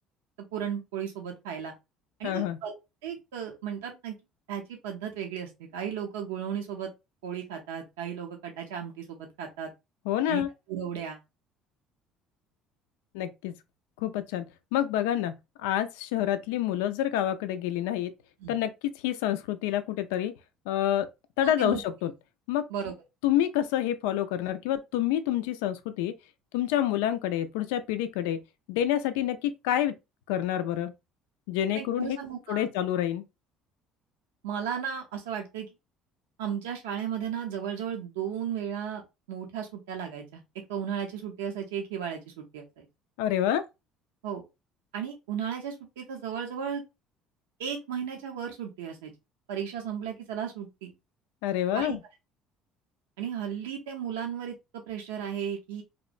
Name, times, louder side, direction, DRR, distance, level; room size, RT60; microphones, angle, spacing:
voice 1, 0.5-1.7 2.2-2.7 3.0-4.2 4.5-6.9 7.2-9.7 10.3-11.2 18.4-18.6 21.4-21.8 22.7-22.9 31.7-32.7 34.4-35.7 36.4-39.0 39.3-40.4 40.7-42.9 44.2-44.4 44.9-46.8 47.6-49.1 49.5-50.9 51.7-52.0 53.2-55.8, right 8 dB, 85° right, 0.6 m, -35 dB
voice 2, 2.2-2.6 10.1-10.5 13.1-13.5 14.0-14.5 14.7-18.1 18.5-20.3 20.7-21.1 21.4-22.1 22.5-22.6 23.2-26.1 26.5-28.4 28.7-29.9 30.3-30.9 31.5-32.2 32.5-33.2 43.2-43.6 51.4-52.0, left 11 dB, 80° left, 0.3 m, -28 dB
2.9 x 2.1 x 2.4 m
hypercardioid pair, 70°, 0 cm